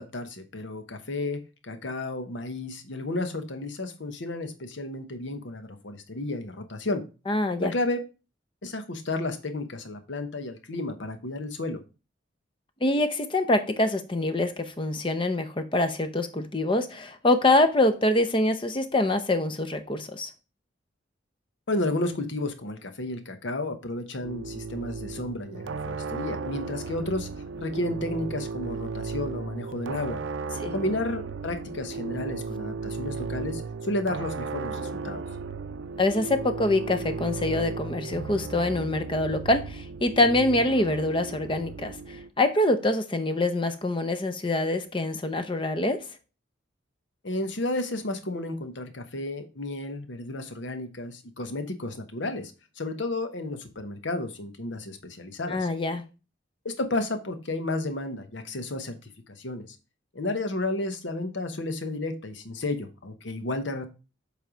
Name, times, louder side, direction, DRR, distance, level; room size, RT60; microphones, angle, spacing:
voice 1, 0.0-7.0 7.6-8.0 8.6-11.8 21.7-27.3 27.6-30.2 30.7-35.2 47.2-55.7 56.6-59.0 59.4-59.8 60.1-63.8, left 2 dB, 70° left, 1.0 m, -32 dB
voice 2, 7.3-7.7 12.8-20.3 30.6-30.7 36.0-46.1 55.5-56.0, left 2 dB, 25° left, 0.7 m, -25 dB
sound 1, 24.2-42.3, right 4 dB, 80° right, 0.5 m, -35 dB
7.7 x 3.4 x 4.9 m
head